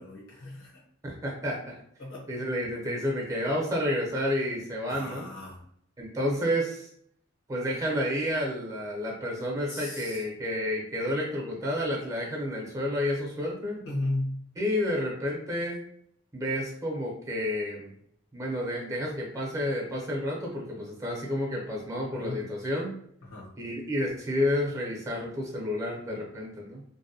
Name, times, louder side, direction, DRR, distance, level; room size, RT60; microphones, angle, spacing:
voice 1, 0.0-0.8 2.0-2.3 4.9-5.7 9.7-10.2 13.8-14.4 22.1-22.4 23.2-23.5, left 1 dB, 70° left, -5 dB, 1.1 m, -35 dB
voice 2, 1.0-1.8 2.3-5.3 6.0-6.9 7.5-13.8 14.6-15.8 16.3-17.9 18.3-22.9 23.6-26.8, left 1 dB, 15° right, -1 dB, 0.6 m, -30 dB
2.6 x 2.1 x 2.6 m, 0.68 s
head